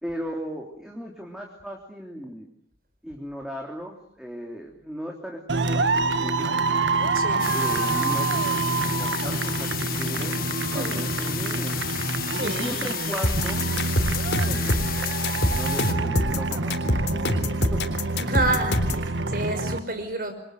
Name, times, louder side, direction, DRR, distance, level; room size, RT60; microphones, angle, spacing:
voice 1, 0.0-2.5 3.0-6.6 7.5-8.3 8.6-10.4 10.7-12.0 12.4-13.7 14.4-14.8 15.5-16.8 17.1-17.9, equal, 5° right, 3.4 m, -37 dB
sound 1, 5.5-19.8, right 3 dB, 90° right, 1.7 m, -26 dB
voice 2, 7.1-7.5 10.7-11.1 12.3-12.7 18.2-20.3, right 2 dB, 50° right, 5.9 m, -29 dB
sound 2, 7.4-15.9, left 11 dB, 55° left, 1.8 m, -33 dB
sound 3, 13.2-19.1, left 1 dB, 75° left, 3.7 m, -25 dB
28.5 x 24.5 x 7.8 m
head